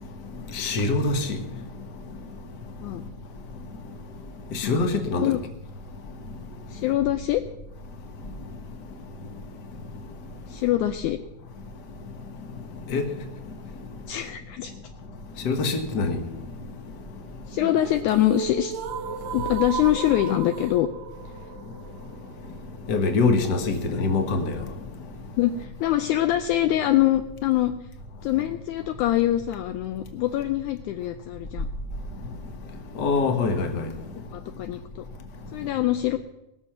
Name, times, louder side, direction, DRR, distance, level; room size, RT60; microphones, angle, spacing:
voice 1, 0.5-1.3 4.5-5.3 12.9-13.1 15.4-16.2 22.9-24.5 33.0-33.9, left 3 dB, 50° left, 1.2 m, -24 dB
voice 2, 6.7-7.4 10.5-11.2 14.1-14.7 17.5-18.7 19.3-20.9 25.4-27.7 28.2-31.7 34.3-35.1 35.5-36.2, left 13 dB, 80° left, 1.9 m, -24 dB
sound 1, 17.5-23.5, right 6 dB, 70° right, 1.8 m, -35 dB
20.5 x 7.0 x 5.9 m
omnidirectional pair, 3.8 m